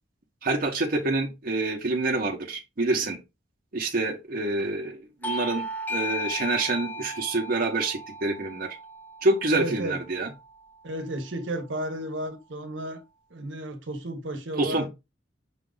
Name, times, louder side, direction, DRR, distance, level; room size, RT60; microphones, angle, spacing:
voice 1, 0.4-3.2 3.7-5.6 5.9-8.8 9.2-10.3 14.6-14.9, right 2 dB, 50° right, 0.8 m, -27 dB
Bell / Doorbell, 5.2-10.3, left 1 dB, 10° left, 0.5 m, -36 dB
voice 2, 9.5-10.0 10.8-13.0 13.3-14.9, right 1 dB, 75° right, 1.0 m, -33 dB
5.8 x 2.4 x 3.8 m
head